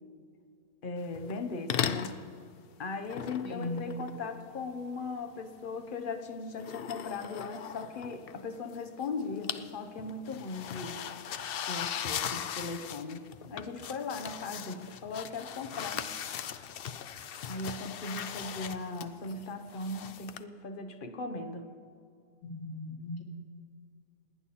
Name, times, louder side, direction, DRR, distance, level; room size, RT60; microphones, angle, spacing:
voice 1, 0.8-2.2 2.8-11.0 11.6-16.6 17.4-21.7, left 3 dB, 40° left, 7 dB, 1.1 m, -38 dB
sound 1, 1.1-1.4 1.7-2.2 3.1-4.8 6.5-8.7 9.0-9.7 10.0-20.4, left 9 dB, 60° left, 0.6 m, -38 dB
voice 2, 3.4-3.8 22.4-23.2, left 2 dB, 90° left, -2 dB, 2.9 m, -38 dB
29.5 x 10.0 x 4.2 m, 2.4 s
omnidirectional pair, 1.5 m